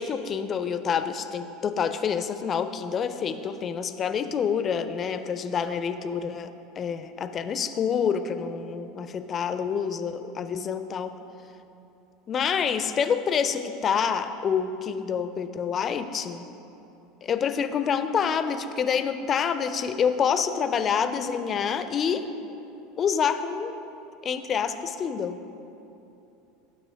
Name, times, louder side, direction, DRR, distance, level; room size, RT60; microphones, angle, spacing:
voice 1, 0.0-11.2 12.3-16.5 17.2-22.3 23.0-23.7 24.2-25.5, left 7 dB, 35° left, 10 dB, 0.4 m, -27 dB
8.7 x 3.2 x 5.6 m, 2.9 s
figure-of-eight pair, 75°, 0 cm